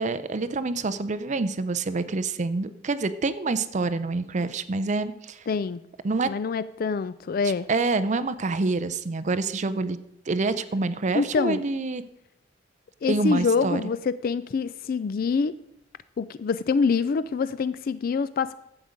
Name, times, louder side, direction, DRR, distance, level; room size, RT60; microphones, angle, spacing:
voice 1, 0.0-5.4 6.0-6.3 7.7-10.0 10.3-12.0 13.0-13.8, right 3 dB, 40° right, 13 dB, 0.5 m, -27 dB
voice 2, 5.5-5.8 6.3-7.7 11.1-11.7 13.0-15.5 16.2-18.5, left 5 dB, 50° left, 15 dB, 0.3 m, -25 dB
11.5 x 8.0 x 5.1 m, 0.82 s
head